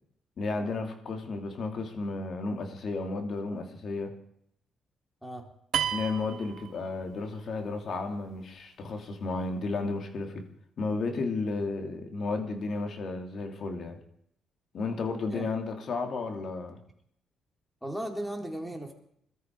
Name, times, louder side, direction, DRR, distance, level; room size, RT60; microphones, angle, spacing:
voice 1, 0.4-4.1 5.9-10.4 10.8-14.0 14.7-16.8, left 3 dB, 55° left, 4 dB, 3.0 m, -33 dB
sound 1, 5.7-7.4, right 9 dB, 70° right, 1.6 m, -33 dB
voice 2, 17.8-18.9, right 1 dB, ahead, 2 dB, 3.7 m, -36 dB
21.5 x 13.5 x 4.9 m, 0.70 s
cardioid pair, 90°, 0 cm